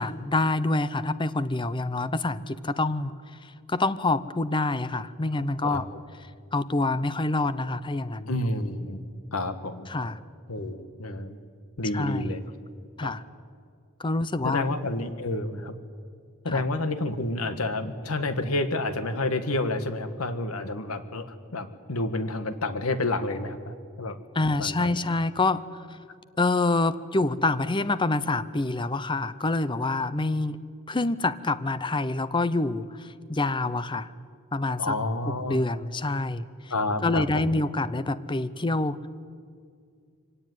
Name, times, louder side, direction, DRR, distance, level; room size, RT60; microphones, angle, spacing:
voice 1, 0.0-3.1 3.4-5.8 6.5-8.3 9.9-10.2 11.9-12.3 13.0-13.2 14.0-14.7 16.5-16.6 24.3-25.6 26.4-30.6 30.9-34.1 34.5-34.9 35.5-36.5 37.0-39.1, left 2 dB, 20° left, 15 dB, 0.7 m, -26 dB
voice 2, 8.3-9.0 9.3-9.9 10.5-11.4 11.8-12.4 13.0-13.1 14.4-15.7 16.4-24.2 24.5-25.0 34.8-35.6 36.7-37.6, left 2 dB, 85° left, 10 dB, 1.6 m, -29 dB
25.0 x 17.5 x 9.4 m, 2.2 s
head